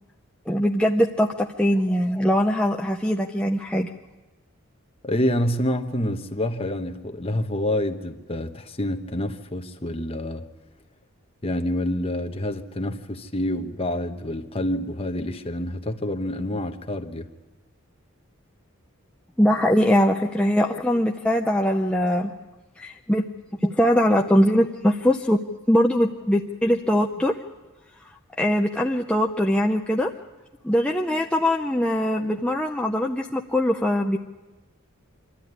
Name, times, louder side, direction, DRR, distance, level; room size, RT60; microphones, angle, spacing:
voice 1, 0.5-3.9 19.4-22.3 22.8-23.3 23.6-25.4 25.7-27.3 28.4-30.1 30.6-34.2, equal, 5° left, 0.6 m, -21 dB
voice 2, 5.0-10.4 11.4-17.3, left 1 dB, 25° left, 1.1 m, -27 dB
25.0 x 13.0 x 9.6 m
head